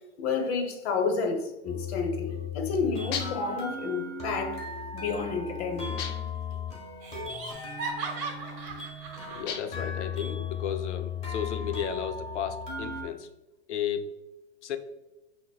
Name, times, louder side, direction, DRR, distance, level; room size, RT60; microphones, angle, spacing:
voice 1, 0.2-4.7 4.9-6.0, left 4 dB, 60° left, 5 dB, 0.9 m, -30 dB
sound 1, 1.7-13.0, left 5 dB, 20° left, 1.2 m, -36 dB
sound 2, 3.1-3.6 6.0-6.4 9.5-9.9, left 6 dB, 40° left, 0.5 m, -36 dB
Laughter, 5.7-6.3 6.5-6.6 7.0-9.5, right 4 dB, 40° right, 1.0 m, -38 dB
voice 2, 9.4-13.3 13.7-14.1 14.6-14.8, left 8 dB, 85° left, 8 dB, 0.6 m, -33 dB
5.9 x 2.1 x 2.3 m, 1.0 s
hypercardioid pair, 120°, 34 cm